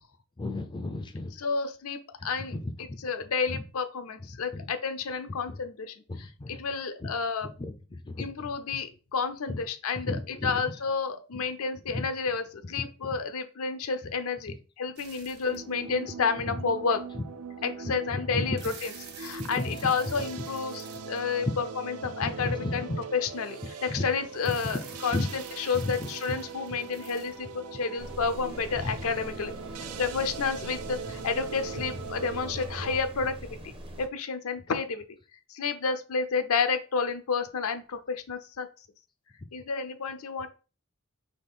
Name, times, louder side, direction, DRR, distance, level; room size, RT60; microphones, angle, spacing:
voice 1, 0.4-1.3 2.5-3.0 4.5-4.7 6.1-6.6 7.0-7.1 7.6-8.3 10.0-10.6 18.1-18.6 19.4-19.7 22.2-23.0 23.9-24.0 25.1-25.3 25.8-25.9, left 2 dB, 20° left, 0.4 m, -33 dB
voice 2, 1.3-7.5 8.2-17.0 17.6-29.5 30.0-33.6 34.0-35.1 35.5-38.7 39.5-40.5, left 5 dB, 70° left, 0.5 m, -31 dB
sound 1, 15.0-15.8 16.5-16.6 18.3-21.6 24.4-27.8, right 6 dB, 50° right, 1.0 m, -49 dB
sound 2, 15.5-33.0, right 5 dB, 75° right, 0.4 m, -41 dB
sound 3, 28.0-34.1, right 1 dB, 25° right, 0.6 m, -42 dB
4.2 x 3.0 x 3.6 m
head